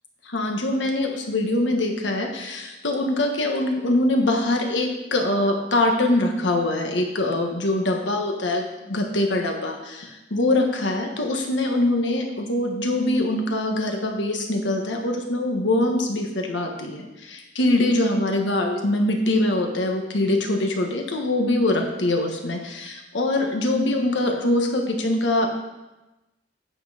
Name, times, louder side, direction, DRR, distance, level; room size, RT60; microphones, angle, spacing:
voice 1, 0.2-25.5, left 1 dB, 85° left, 3 dB, 1.4 m, -23 dB
8.9 x 8.0 x 5.0 m, 1.0 s
head